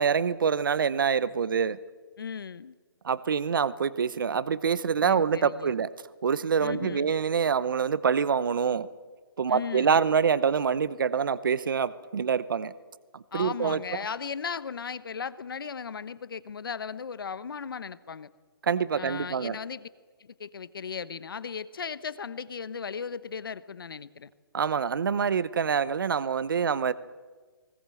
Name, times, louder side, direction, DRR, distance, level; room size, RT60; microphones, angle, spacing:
voice 1, 0.0-1.8 3.0-5.9 6.2-8.9 9.4-12.7 13.1-14.0 18.6-19.6 24.5-26.9, right 6 dB, 60° right, 17 dB, 0.8 m, -26 dB
voice 2, 2.2-2.8 5.0-5.8 6.6-7.1 9.5-9.9 13.3-18.3 19.0-19.9 20.2-24.3, left 6 dB, 65° left, 16 dB, 1.0 m, -36 dB
20.0 x 18.0 x 7.7 m, 1.4 s
hypercardioid pair, 175°, 12 cm